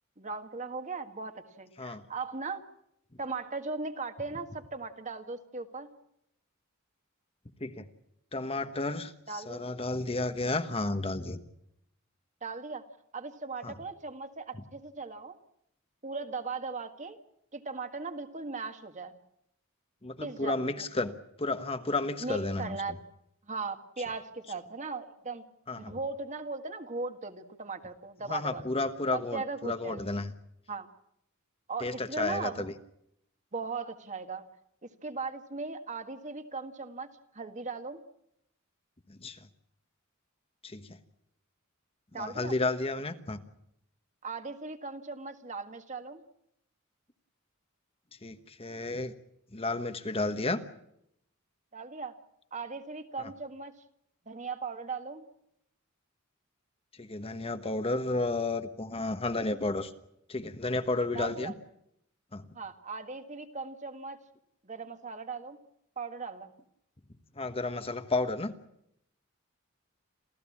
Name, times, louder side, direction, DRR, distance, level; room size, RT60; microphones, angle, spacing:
voice 1, 0.2-2.6 3.2-5.9 9.3-9.6 12.4-12.8 13.1-15.4 16.0-17.2 17.5-19.2 20.2-20.9 22.2-22.9 23.4-25.4 25.8-28.6 29.1-30.0 30.7-30.9 31.7-32.7 33.5-34.5 34.8-38.0 42.1-42.6 44.2-46.2 51.7-52.2 52.5-53.8 54.3-55.2 61.1-61.5 62.6-64.2 64.6-65.6 66.0-66.6, right 4 dB, 35° right, 8 dB, 1.7 m, -38 dB
voice 2, 8.3-11.4 13.6-13.7 20.0-22.8 25.7-25.9 28.3-30.3 31.8-32.7 39.1-39.4 40.6-41.0 42.1-43.4 48.2-49.1 49.5-50.6 53.2-53.3 57.0-59.9 60.3-61.5 62.3-62.5 67.4-68.6, left 2 dB, 25° left, 9 dB, 1.2 m, -32 dB
28.0 x 15.5 x 8.5 m, 0.77 s
head